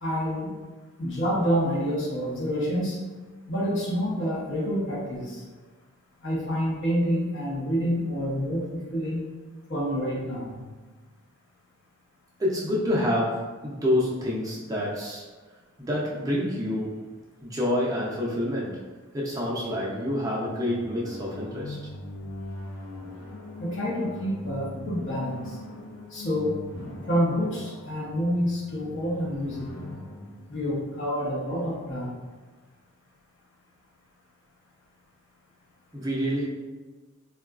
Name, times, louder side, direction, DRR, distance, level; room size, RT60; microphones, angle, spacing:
voice 1, 0.0-0.5 1.0-3.0 3.5-5.4 6.2-9.3 9.7-10.6 23.6-25.6 26.1-26.6 27.1-29.7 30.5-32.2, equal, 60° left, -5 dB, 0.8 m, -28 dB
voice 2, 12.4-15.2 15.8-17.1 17.4-18.8 19.1-21.8 35.9-36.4, left 1 dB, 15° right, -5 dB, 0.4 m, -27 dB
sound 1, 20.1-31.7, left 2 dB, 85° left, 0.6 m, -42 dB
3.7 x 2.3 x 2.3 m, 1.3 s
head